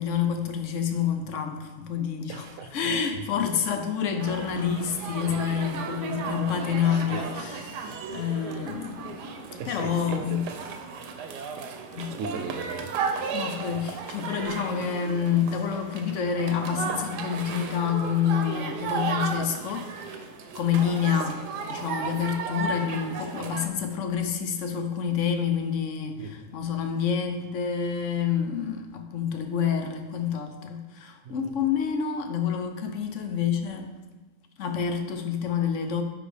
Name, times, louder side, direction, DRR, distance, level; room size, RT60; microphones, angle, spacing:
voice 1, 0.0-2.4 2.7-10.4 11.9-12.2 13.3-20.3 20.5-33.9 34.6-36.0, left 7 dB, 65° left, 6 dB, 0.8 m, -28 dB
voice 2, 2.3-2.9 6.9-7.3 7.8-8.0 9.6-10.5 12.1-13.4 26.2-26.4 31.2-31.5, right 4 dB, 60° right, 6 dB, 0.9 m, -38 dB
sound 1, 4.2-23.7, right 5 dB, 85° right, 1.3 m, -34 dB
9.5 x 4.0 x 3.3 m, 1.2 s
omnidirectional pair, 1.7 m